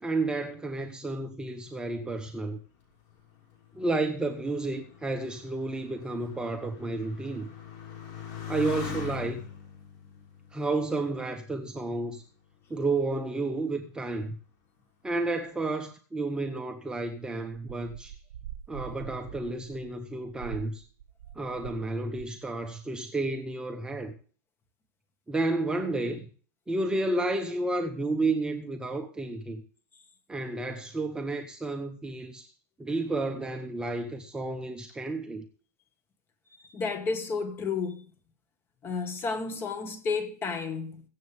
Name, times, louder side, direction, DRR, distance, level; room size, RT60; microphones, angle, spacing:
voice 1, 0.0-2.6 3.7-7.5 8.5-9.4 10.5-12.2 12.7-14.4 15.0-18.2 18.7-20.8 21.3-24.1 25.3-26.3 26.7-29.6 30.3-32.5 32.8-35.4, right 2 dB, 10° right, 0.9 m, -31 dB
Motorcycle, 2.9-11.9 12.6-13.2, left 8 dB, 50° left, 5.9 m, -43 dB
sound 1, 18.0-21.9 22.1-22.5, right 10 dB, 80° right, 1.4 m, -44 dB
voice 2, 36.5-38.0 38.8-41.0, left 4 dB, 25° left, 1.7 m, -32 dB
22.5 x 7.8 x 3.4 m
supercardioid pair, 150°, 10 cm